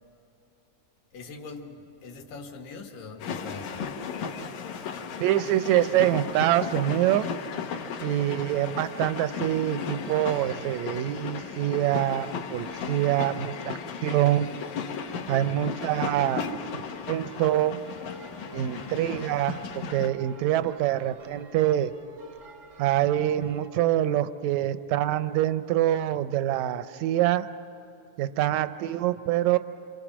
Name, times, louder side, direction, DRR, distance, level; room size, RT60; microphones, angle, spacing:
voice 1, 1.1-3.9, left 4 dB, 90° left, 2 dB, 3.4 m, -42 dB
sound 1, 3.2-20.1, left 6 dB, 70° left, 2.5 m, -35 dB
voice 2, 5.2-7.3 8.0-14.5 15.3-16.5 17.1-17.8 18.5-21.9 22.8-27.5 28.2-29.6, right 13 dB, 75° right, 12 dB, 1.8 m, -25 dB
sound 2, 15.5-23.7, right 3 dB, 45° right, 0.9 m, -51 dB
27.5 x 26.5 x 6.1 m, 2.9 s
omnidirectional pair, 3.8 m